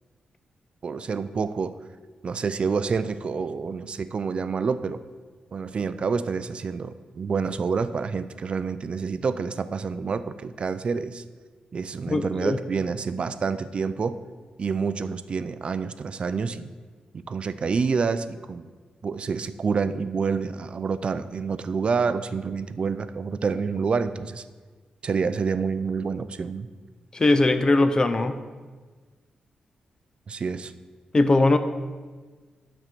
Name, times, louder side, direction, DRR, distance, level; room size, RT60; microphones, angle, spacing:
voice 1, 0.8-1.8 2.2-5.0 5.5-11.2 11.7-14.2 14.6-16.7 17.3-18.7 19.0-24.4 25.0-26.7 30.3-30.7, right 5 dB, 45° right, 13 dB, 0.3 m, -28 dB
voice 2, 12.1-12.6 27.1-28.3 31.1-31.6, left 2 dB, 30° left, 9 dB, 0.4 m, -20 dB
9.2 x 4.3 x 6.0 m, 1.4 s
wide cardioid pair, 140°, 3 cm